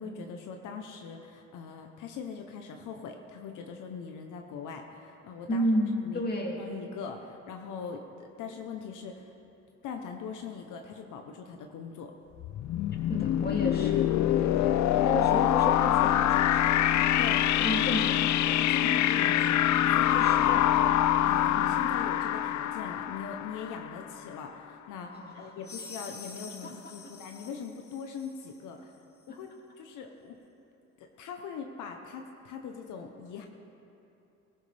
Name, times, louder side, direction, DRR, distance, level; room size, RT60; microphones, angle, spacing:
voice 1, 0.0-5.6 6.0-6.2 6.6-9.3 9.8-12.1 17.2-17.5 18.5-20.9 21.2-28.9 29.3-30.4 31.0-33.5, left 6 dB, 85° left, 4 dB, 0.9 m, -41 dB
voice 2, 5.5-6.6 13.1-14.7 15.0-16.7 17.6-18.8 20.1-20.6 21.6-21.8 25.1-25.5 26.6-26.7, equal, 30° left, -1 dB, 2.5 m, -33 dB
sound 1, 12.4-24.1, left 12 dB, 70° left, 0.5 m, -25 dB
sound 2, 25.6-28.6, left 4 dB, 50° left, 1.7 m, -47 dB
17.5 x 16.0 x 3.4 m, 2.9 s
cardioid pair, 90°, 30 cm